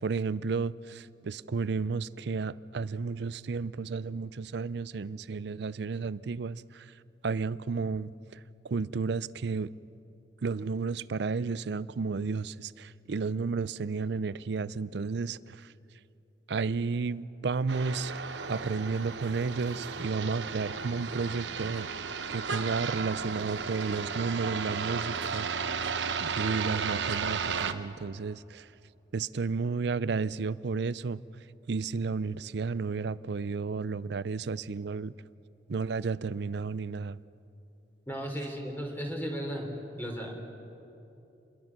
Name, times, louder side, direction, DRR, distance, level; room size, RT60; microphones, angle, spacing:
voice 1, 0.0-6.8 7.2-8.4 8.6-9.7 10.4-15.6 16.5-18.1 18.5-21.9 22.3-25.5 26.2-28.7 29.1-31.2 31.7-35.1 35.7-37.2, right 4 dB, 70° right, 17 dB, 0.5 m, -32 dB
sound 1, 17.7-27.7, right 6 dB, 90° right, 0.9 m, -34 dB
voice 2, 38.1-39.7 40.0-40.3, equal, 10° left, 1 dB, 3.4 m, -35 dB
27.5 x 22.0 x 5.9 m, 2.8 s
head